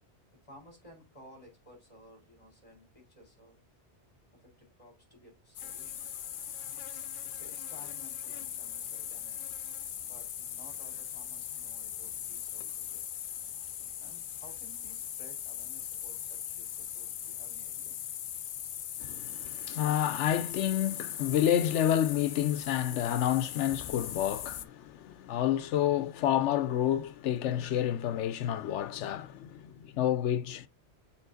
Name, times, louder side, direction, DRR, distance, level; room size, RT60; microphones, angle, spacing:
voice 1, 0.4-3.6 4.3-6.1 7.2-9.5 10.0-13.0 14.0-18.0, left 1 dB, 30° left, 4.2 m, -56 dB
sound 1, 5.5-24.6, left 10 dB, 60° left, 0.6 m, -40 dB
voice 2, 19.0-30.7, left 11 dB, 90° left, 0.9 m, -29 dB
7.2 x 3.7 x 3.9 m
omnidirectional pair, 1.2 m